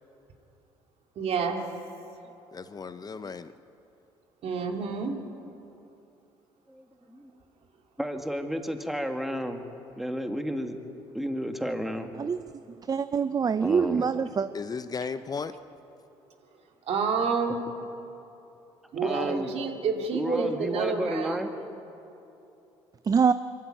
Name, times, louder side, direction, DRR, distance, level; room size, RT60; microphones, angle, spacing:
voice 1, 1.2-1.6 4.4-5.2 16.9-17.6 18.9-21.4, right 5 dB, 55° right, 3 dB, 2.7 m, -29 dB
voice 2, 2.5-3.5 14.5-15.5, left 5 dB, 30° left, 12 dB, 0.8 m, -35 dB
voice 3, 6.7-7.3 8.0-9.7 10.0-10.8 11.1-12.1 13.6-14.1 19.0-19.5 20.1-21.5, equal, ahead, 5 dB, 1.9 m, -32 dB
voice 4, 12.9-14.5 23.1-23.3, right 6 dB, 30° right, 12 dB, 0.6 m, -24 dB
24.0 x 13.5 x 9.1 m, 2.9 s
supercardioid pair, 70°, 12 cm